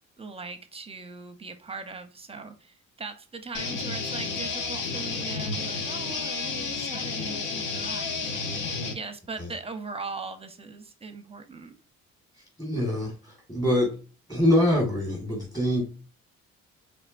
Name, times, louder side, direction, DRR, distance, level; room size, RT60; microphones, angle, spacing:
voice 1, 0.2-11.8, right 4 dB, 20° right, 9 dB, 0.6 m, -40 dB
sound 1, 3.5-8.9, left 4 dB, 85° left, 0.8 m, -31 dB
voice 2, 12.6-14.0 14.3-15.8, left 1 dB, 15° left, -3 dB, 1.6 m, -24 dB
4.3 x 3.3 x 2.4 m, 0.37 s
cardioid pair, 90°, 30 cm